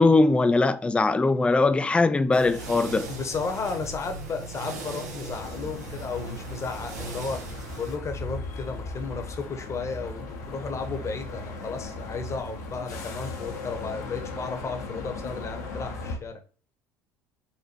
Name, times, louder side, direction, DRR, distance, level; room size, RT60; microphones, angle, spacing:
voice 1, 0.0-3.1, left 3 dB, 10° left, 0.4 m, -21 dB
sound 1, 2.3-8.0, right 3 dB, 85° right, 0.9 m, -38 dB
voice 2, 3.1-16.4, left 4 dB, 35° left, 1.0 m, -34 dB
sound 2, 5.3-16.2, left 2 dB, 80° left, 1.1 m, -37 dB
4.2 x 2.5 x 4.4 m
hypercardioid pair, 70°, 9 cm